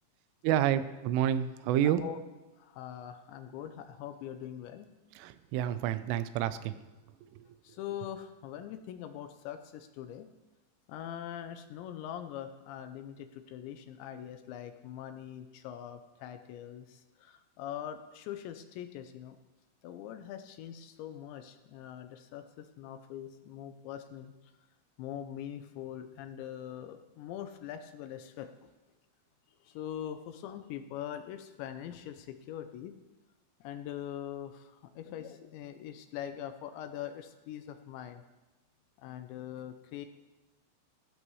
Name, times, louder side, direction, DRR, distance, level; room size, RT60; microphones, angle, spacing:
voice 1, 0.4-2.0 5.2-6.7, right 11 dB, 90° right, 12 dB, 3.2 m, -29 dB
voice 2, 1.8-2.2 2.6-4.9 7.6-10.3 10.9-19.4 19.8-24.3 25.0-28.5 29.7-32.9 33.6-38.2 39.0-40.1, left 10 dB, 80° left, 8 dB, 2.8 m, -42 dB
17.5 x 15.0 x 3.2 m, 1.1 s
omnidirectional pair, 5.5 m